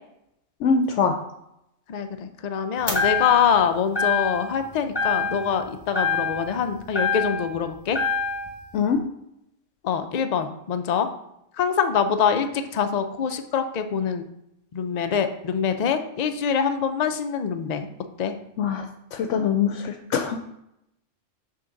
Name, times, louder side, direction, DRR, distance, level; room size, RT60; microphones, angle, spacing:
voice 1, 0.6-1.2 8.7-9.0 18.6-18.9 19.1-20.4, left 6 dB, 75° left, 6 dB, 0.9 m, -23 dB
voice 2, 1.9-8.0 9.8-11.1 11.6-14.2 14.7-17.9 18.2-18.3, left 7 dB, 55° left, 8 dB, 0.4 m, -24 dB
sound 1, 2.9-3.6 4.0-4.6 4.9-5.6 5.9-7.6 7.9-8.6, left 5 dB, 20° left, 1.0 m, -26 dB
6.3 x 3.8 x 5.7 m, 0.81 s
omnidirectional pair, 1.3 m